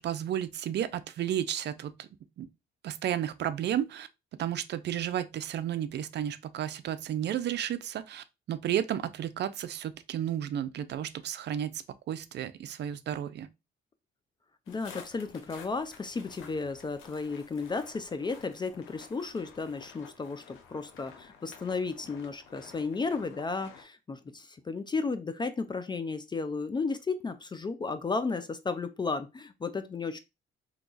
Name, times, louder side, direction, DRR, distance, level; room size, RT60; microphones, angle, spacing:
voice 1, 0.0-2.1 2.4-2.5 2.8-4.1 4.4-13.5, right 10 dB, 60° right, 0.4 m, -32 dB
sound 1, 14.7-23.8, left 6 dB, 90° left, 0.7 m, -52 dB
voice 2, 14.7-30.2, left 4 dB, 25° left, 0.3 m, -34 dB
2.8 x 2.3 x 3.8 m
cardioid pair, 90°, 20 cm